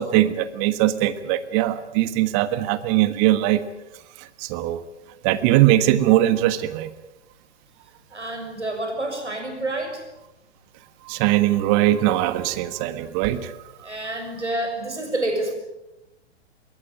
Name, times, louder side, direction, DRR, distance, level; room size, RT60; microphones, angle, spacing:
voice 1, 0.0-3.6 4.4-4.8 5.2-6.9 11.1-13.5, right 14 dB, 35° right, 13 dB, 1.4 m, -20 dB
voice 2, 8.1-10.0 13.8-15.5, right 1 dB, 85° right, 4 dB, 6.5 m, -28 dB
22.5 x 18.5 x 9.0 m, 0.94 s
figure-of-eight pair, 105°, 34 cm